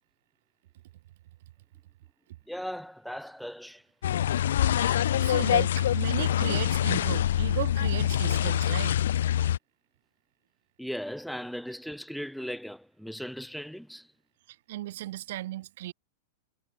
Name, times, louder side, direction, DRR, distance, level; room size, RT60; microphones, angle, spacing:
voice 1, 2.5-3.8 10.8-14.1, equal, ahead, 0.6 m, -38 dB
sound 1, 4.0-9.6, left 11 dB, 85° left, 0.7 m, -25 dB
voice 2, 4.7-9.0 14.5-15.9, right 15 dB, 60° right, 1.1 m, -35 dB
supercardioid pair, 160°, 0 cm